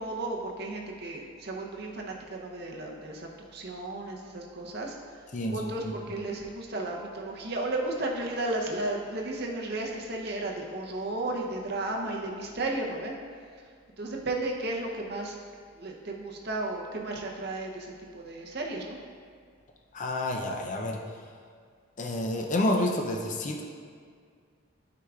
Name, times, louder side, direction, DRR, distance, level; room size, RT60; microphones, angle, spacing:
voice 1, 0.0-5.0 5.4-13.1 14.0-15.4 15.8-19.0, right 2 dB, 50° right, 0 dB, 0.7 m, -34 dB
voice 2, 5.3-5.9 19.9-21.0 22.0-23.6, left 1 dB, 35° left, 1 dB, 0.5 m, -29 dB
9.6 x 4.8 x 2.4 m, 2.1 s
head